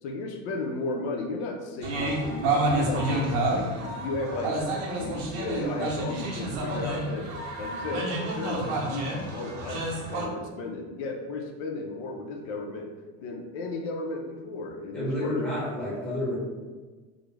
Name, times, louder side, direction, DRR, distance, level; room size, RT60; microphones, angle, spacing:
voice 1, 0.0-4.6 5.0-7.3 7.6-12.9 13.2-15.4, left 3 dB, 85° left, 2 dB, 0.5 m, -34 dB
sound 1, 1.8-10.3, right 2 dB, 85° right, 0.7 m, -29 dB
voice 2, 14.9-16.4, left 1 dB, 5° left, -9 dB, 0.8 m, -29 dB
2.4 x 2.0 x 3.1 m, 1.3 s
cardioid pair, 170°, 33 cm